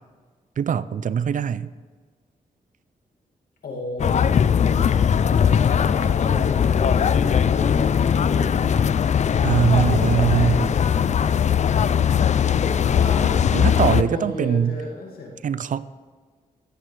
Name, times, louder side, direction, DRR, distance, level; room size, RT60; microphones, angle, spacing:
voice 1, 0.6-1.7 9.4-10.7 13.5-14.8 15.4-15.8, right 7 dB, 60° right, 16 dB, 0.5 m, -21 dB
voice 2, 3.6-8.8 9.4-11.8 12.5-13.4 13.8-15.3, left 2 dB, 90° left, -1 dB, 2.4 m, -34 dB
sound 1, 4.0-14.0, left 8 dB, 50° left, 0.4 m, -19 dB
17.0 x 7.9 x 3.3 m, 1.5 s
cardioid pair, 65°, 15 cm